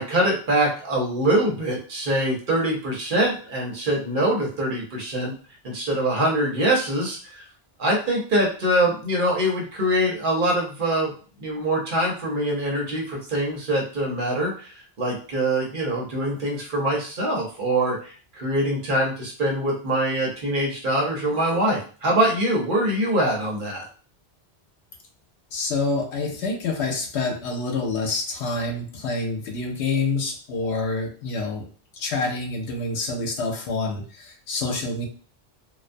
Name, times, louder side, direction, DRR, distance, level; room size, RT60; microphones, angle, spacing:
voice 1, 0.0-5.3 5.6-7.5 7.8-11.1 11.4-23.9, right 1 dB, 55° right, -2 dB, 0.9 m, -24 dB
voice 2, 25.5-31.7 31.9-35.1, left 3 dB, 85° left, 3 dB, 0.9 m, -27 dB
2.3 x 2.2 x 2.5 m, 0.40 s
omnidirectional pair, 1.1 m